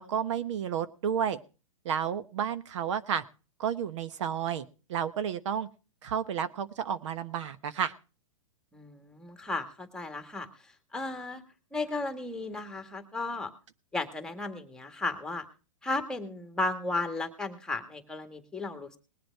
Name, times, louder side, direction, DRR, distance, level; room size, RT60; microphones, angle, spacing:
voice 1, 0.0-1.4 1.8-3.2 3.6-5.7 6.0-7.9, right 8 dB, 60° right, 12 dB, 1.1 m, -31 dB
voice 2, 8.7-10.5 10.9-11.4 11.7-13.5 13.9-15.4 15.8-19.0, left 2 dB, 5° left, 7 dB, 1.7 m, -34 dB
20.0 x 7.8 x 4.6 m, 0.35 s
hypercardioid pair, 140°, 17 cm